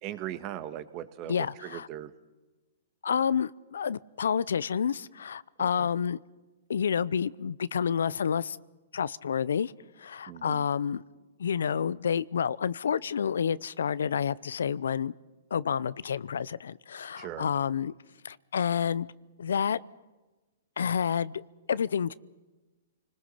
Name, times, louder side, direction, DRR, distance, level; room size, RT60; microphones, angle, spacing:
voice 1, 0.0-2.1 5.6-5.9 10.3-10.7 17.2-17.5, right 11 dB, 35° right, 12 dB, 1.7 m, -39 dB
voice 2, 1.3-1.9 3.0-6.2 6.7-8.6 8.9-9.7 10.0-11.0 11.4-15.1 15.5-17.9 18.2-19.1 19.4-19.8 20.8-21.4 21.7-22.1, left 7 dB, 80° left, 20 dB, 0.7 m, -29 dB
29.5 x 20.5 x 5.8 m, 1.2 s
hypercardioid pair, 135°, 0 cm